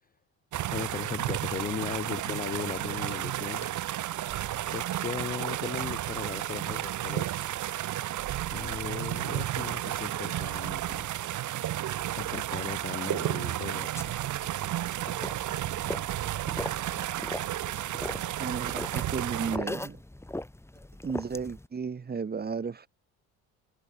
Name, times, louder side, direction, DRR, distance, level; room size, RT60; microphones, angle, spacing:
sound 1, 0.5-19.6, right 13 dB, 45° right, 0.8 m, -32 dB
voice 1, 0.7-3.7 4.7-7.6 8.5-11.1 12.2-13.9, left 7 dB, 20° left, 0.5 m, -37 dB
sound 2, 2.4-9.6, left 21 dB, 90° left, 7.8 m, -63 dB
sound 3, 14.0-21.7, left 1 dB, 5° left, 1.8 m, -40 dB
voice 2, 18.4-20.0 21.0-22.9, right 5 dB, 25° right, 1.1 m, -34 dB
hypercardioid pair, 70°, 41 cm